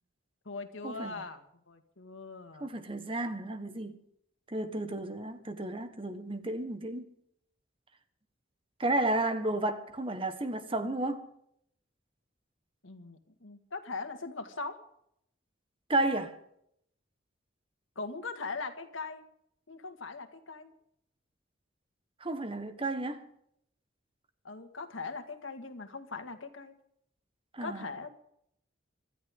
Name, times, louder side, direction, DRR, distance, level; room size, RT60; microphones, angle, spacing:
voice 1, 0.5-2.8 12.8-14.8 18.0-19.2 19.7-20.7 24.4-26.8 27.6-28.1, left 3 dB, 90° left, 1.9 m, -40 dB
voice 2, 2.6-4.0 4.5-7.1 8.8-11.3 15.9-16.4 22.2-23.2 27.5-27.9, right 2 dB, 30° right, 1.3 m, -32 dB
25.5 x 13.0 x 3.7 m
head